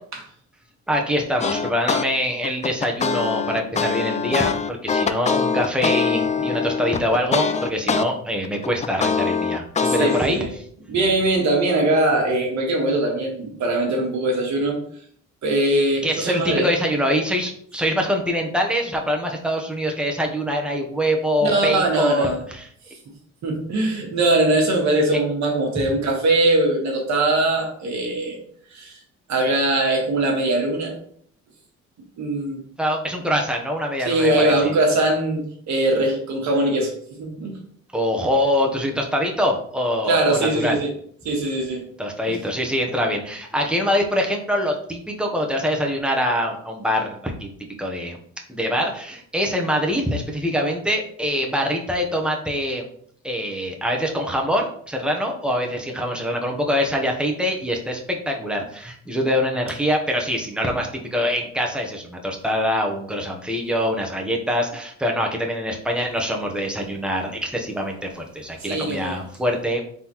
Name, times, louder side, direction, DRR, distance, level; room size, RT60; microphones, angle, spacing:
voice 1, 0.9-10.4 16.0-22.7 32.8-34.7 37.9-40.8 42.0-47.5 47.8-48.2 48.5-52.8 53.2-69.8, equal, 5° right, 0.9 m, -24 dB
sound 1, 1.4-2.1 2.4-8.1 8.4-10.2, left 5 dB, 25° left, 0.3 m, -23 dB
voice 2, 9.8-10.5 10.9-14.8 15.4-16.7 21.4-22.4 22.9-23.0 23.4-28.4 28.7-29.0 29.3-30.9 32.2-32.7 34.0-37.6 40.1-40.9 41.2-41.9 42.3-42.4 68.6-69.3, right 2 dB, 65° right, 1.5 m, -21 dB
4.0 x 3.7 x 3.0 m
cardioid pair, 90°, 30 cm